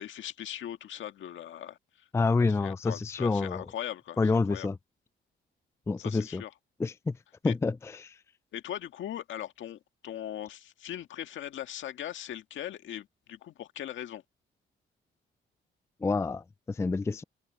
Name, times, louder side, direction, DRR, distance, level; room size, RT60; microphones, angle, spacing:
voice 1, 0.0-1.8 2.4-4.7 6.0-6.5 7.4-7.5 8.5-14.2, left 11 dB, 75° left, 1.8 m, -40 dB
voice 2, 2.1-3.6 4.2-4.8 5.9-6.4 6.8-7.2 7.4-8.1 16.0-17.2, left 3 dB, 15° left, 0.4 m, -28 dB
cardioid pair, 90°, 20 cm